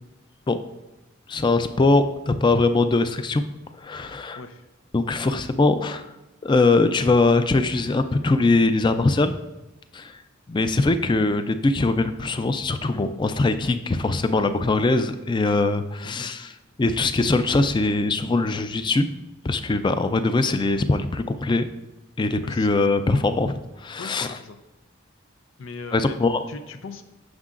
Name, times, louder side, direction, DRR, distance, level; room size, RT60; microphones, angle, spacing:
voice 1, 1.3-3.4 3.8-4.4 4.9-6.1 6.4-9.3 9.9-10.2 10.5-16.5 16.8-19.1 19.4-21.7 22.2-24.3 25.9-26.4, left 3 dB, 25° left, 10 dB, 0.4 m, -22 dB
voice 2, 4.3-4.7 16.0-16.3 22.4-22.7 24.0-24.6 25.6-26.2 26.5-27.0, left 4 dB, 90° left, 9 dB, 0.6 m, -39 dB
9.6 x 6.4 x 2.5 m, 1.0 s
head